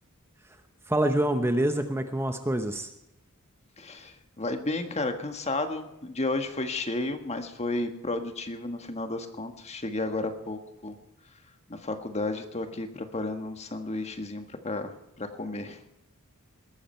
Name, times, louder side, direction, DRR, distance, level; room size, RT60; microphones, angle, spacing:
voice 1, 0.9-2.9, right 1 dB, 10° right, 7 dB, 0.9 m, -26 dB
voice 2, 3.8-10.9 11.7-15.8, left 2 dB, 30° left, 7 dB, 1.6 m, -32 dB
20.5 x 13.5 x 4.5 m, 0.87 s
head